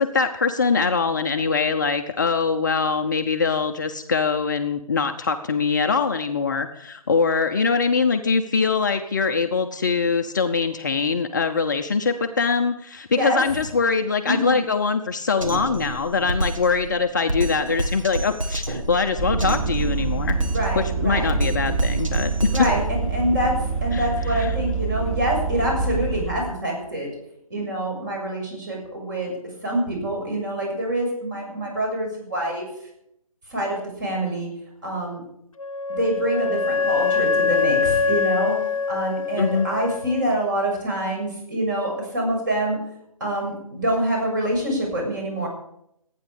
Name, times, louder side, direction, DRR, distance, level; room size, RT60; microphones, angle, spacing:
voice 1, 0.0-20.4 20.8-22.5 23.9-24.5 39.4-39.7, left 5 dB, 30° left, 6 dB, 0.8 m, -23 dB
voice 2, 14.3-14.6 20.5-21.4 22.5-27.1 27.5-29.3 29.6-32.7 33.5-34.5 34.8-35.2 35.9-38.5 38.9-42.8 43.2-45.5, right 1 dB, 35° right, 0 dB, 6.9 m, -26 dB
Drum kit, 15.4-23.4, right 1 dB, 65° right, 2.5 m, -29 dB
Vehicle, 19.2-26.5, right 5 dB, ahead, 0.5 m, -26 dB
Wind instrument woodwind instrument, 35.6-40.2, left 5 dB, 65° left, 0.9 m, -23 dB
26.0 x 9.6 x 5.1 m, 0.76 s
figure-of-eight pair, 145°, 18 cm